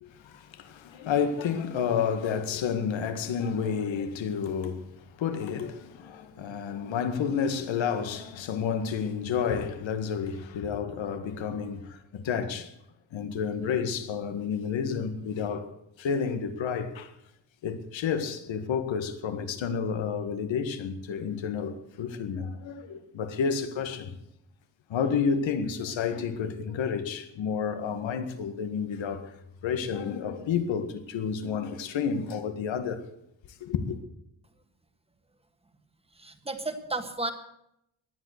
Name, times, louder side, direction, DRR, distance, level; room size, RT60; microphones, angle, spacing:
voice 1, 0.0-12.7 13.1-17.1 17.6-24.2 24.9-29.4 29.6-33.1 33.6-34.0, left 6 dB, 90° left, 1.9 m, -30 dB
voice 2, 36.2-37.3, right 2 dB, 15° right, 1.6 m, -33 dB
19.0 x 11.5 x 6.6 m
wide cardioid pair, 150°, 44 cm